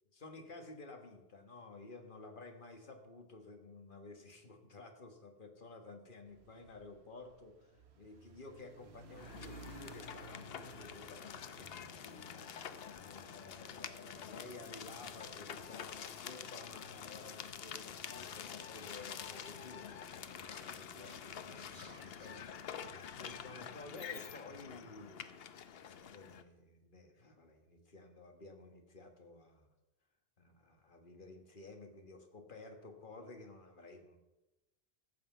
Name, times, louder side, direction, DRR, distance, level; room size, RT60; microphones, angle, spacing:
voice 1, 0.1-12.5 13.0-25.3 25.8-29.7 30.4-34.2, left 3 dB, 50° left, 5 dB, 1.6 m, -53 dB
sound 1, 6.3-14.6, right 3 dB, 75° right, 1.3 m, -57 dB
sound 2, 9.2-26.4, left 8 dB, 70° left, 0.9 m, -47 dB
Speech, 19.9-23.4, right 1 dB, 40° right, 2.0 m, -61 dB
14.5 x 5.8 x 7.2 m, 1.0 s
omnidirectional pair, 1.1 m